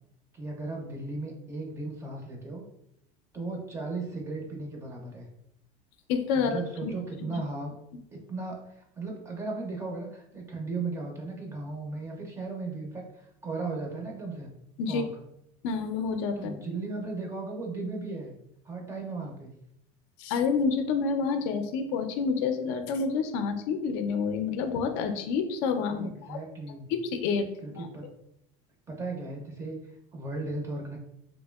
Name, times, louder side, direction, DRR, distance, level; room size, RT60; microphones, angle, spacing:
voice 1, 0.3-2.6 3.3-5.3 6.4-7.7 8.1-14.5 14.9-15.1 16.4-18.3 18.6-19.5 25.9-26.9 27.6-28.1 28.9-31.0, right 3 dB, 15° right, 1 dB, 0.5 m, -36 dB
voice 2, 6.1-6.9 14.8-15.0 15.6-16.6 20.2-26.4 26.9-27.9, left 5 dB, 65° left, 6 dB, 0.4 m, -28 dB
2.9 x 2.7 x 2.2 m, 0.79 s
cardioid pair, 150°, 17 cm